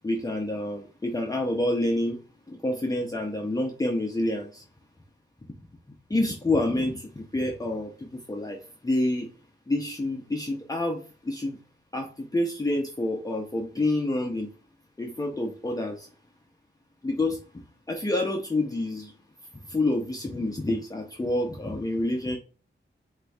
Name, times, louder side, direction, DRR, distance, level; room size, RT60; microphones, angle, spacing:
voice 1, 0.0-2.2 2.5-4.6 6.1-9.3 9.7-11.6 11.9-14.5 15.0-16.1 17.0-17.4 17.9-19.1 19.7-22.4, left 1 dB, 20° left, 1 dB, 0.6 m, -28 dB
7.9 x 2.6 x 2.3 m, 0.36 s
wide cardioid pair, 95°, 19 cm